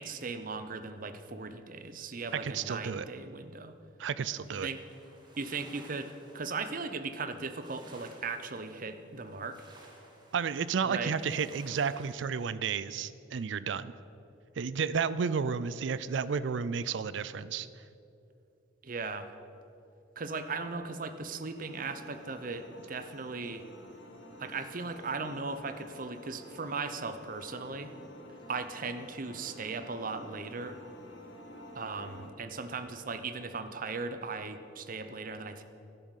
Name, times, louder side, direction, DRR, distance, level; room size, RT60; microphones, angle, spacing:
voice 1, 0.0-3.7 4.5-4.8 5.4-9.6 10.8-11.1 18.8-19.3 20.2-23.6 24.4-27.9 28.5-30.8 31.7-35.6, right 4 dB, 45° right, 10 dB, 0.7 m, -38 dB
voice 2, 2.4-3.1 4.0-4.7 10.3-13.9 14.6-17.7, right 6 dB, 70° right, 16 dB, 0.4 m, -32 dB
sound 1, 4.3-12.1, right 1 dB, 25° right, 1.7 m, -56 dB
sound 2, 21.6-32.3, left 1 dB, 70° left, 1.6 m, -50 dB
12.0 x 10.5 x 6.4 m, 2.7 s
head